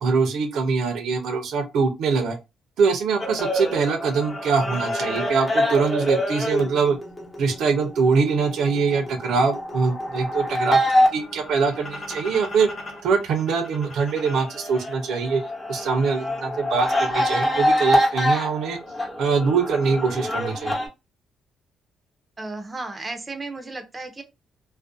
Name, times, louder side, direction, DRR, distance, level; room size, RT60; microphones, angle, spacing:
voice 1, 0.0-2.4 2.8-7.0 7.4-10.8 11.1-12.7 13.0-15.4 15.7-18.8 19.2-20.7, right 5 dB, 75° right, 0.6 m, -23 dB
sound 1, 3.2-13.0 13.3-20.9, equal, 20° left, 0.9 m, -26 dB
voice 2, 22.4-24.2, right 3 dB, 25° right, 0.5 m, -34 dB
2.5 x 2.1 x 2.4 m
cardioid pair, 90°, 0 cm